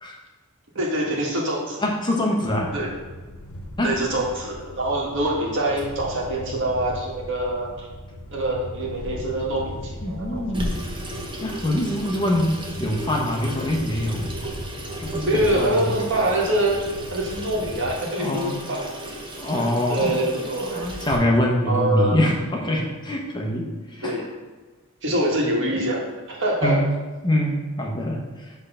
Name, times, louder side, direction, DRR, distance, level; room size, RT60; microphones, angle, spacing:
voice 1, 0.8-1.8 2.7-2.9 3.8-7.9 8.3-10.6 15.2-16.8 17.1-18.9 19.9-20.9 21.6-22.2 24.0-24.3 25.0-26.0 26.3-26.8, right 1 dB, 60° right, -2 dB, 1.7 m, -25 dB
voice 2, 1.8-2.7 3.8-4.0 10.0-10.7 11.4-14.3 15.0-15.9 18.2-18.5 19.4-24.2 26.6-26.9 27.2-28.5, left 1 dB, 20° left, 0 dB, 1.0 m, -24 dB
sound 1, 2.4-17.9, left 1 dB, 90° left, 0.9 m, -38 dB
Water tap faucet / Sink (filling or washing), 10.5-21.2, right 1 dB, 25° right, 1.0 m, -35 dB
8.0 x 3.4 x 5.6 m, 1.3 s
head